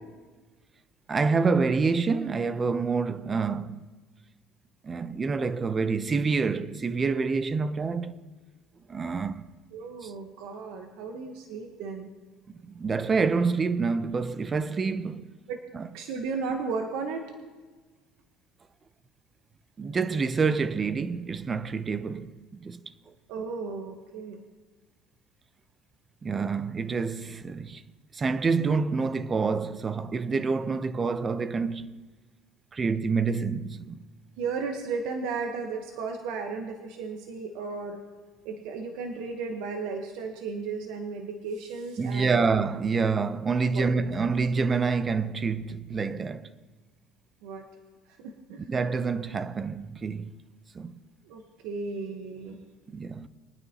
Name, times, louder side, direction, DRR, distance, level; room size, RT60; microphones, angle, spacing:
voice 1, 1.1-3.9 4.8-8.1 8.9-9.5 10.0-10.1 12.7-15.3 15.7-15.9 19.8-22.3 22.6-22.8 26.2-27.8 28.1-31.9 32.7-34.0 42.0-46.5 48.7-50.3 50.7-51.0 52.9-53.3, right 4 dB, 30° right, 0.7 m, -27 dB
voice 2, 9.7-12.1 15.5-15.6 15.9-17.2 23.3-24.4 34.4-38.0 38.4-42.5 43.7-43.9 47.4-47.6 48.2-48.6 51.2-52.6, right 4 dB, 75° right, 1.1 m, -34 dB
22.5 x 9.5 x 2.9 m
supercardioid pair, 95°, 0 cm